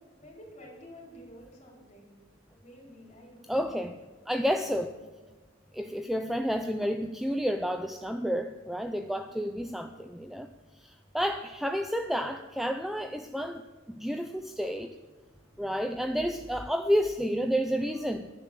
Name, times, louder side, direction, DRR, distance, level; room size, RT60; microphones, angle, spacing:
voice 1, 0.1-2.1 2.5-3.7 4.9-5.0 9.0-9.4 12.9-13.2 15.2-15.9, equal, 30° left, -3 dB, 4.4 m, -52 dB
voice 2, 3.5-4.0 4.3-5.0 5.7-10.5 10.8-13.7 14.0-14.9 15.6-18.3, equal, ahead, 7 dB, 0.4 m, -30 dB
11.0 x 10.5 x 7.4 m, 1.3 s
head